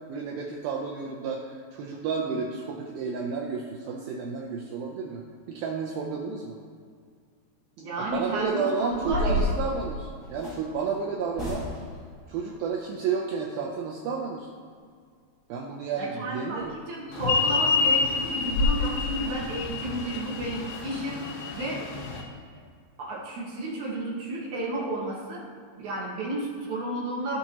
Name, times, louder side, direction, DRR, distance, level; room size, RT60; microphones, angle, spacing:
voice 1, 0.1-6.6 8.0-11.7 12.3-14.5 15.5-16.8, right 5 dB, 80° right, -1 dB, 2.2 m, -31 dB
voice 2, 7.8-9.6 16.0-21.2 21.5-21.8 23.0-25.4 25.8-27.4, right 1 dB, 65° right, -4 dB, 2.1 m, -32 dB
sound 1, 8.1-8.3 8.9-10.6 11.3-12.0 16.5-16.7 17.1-17.2 17.6-17.7 18.1-18.2 18.5-18.8, left 1 dB, 50° left, 1.0 m, -29 dB
sound 2, 17.2-22.2, left 5 dB, 75° left, 2.5 m, -27 dB
16.0 x 5.9 x 2.9 m, 2.1 s
omnidirectional pair, 4.9 m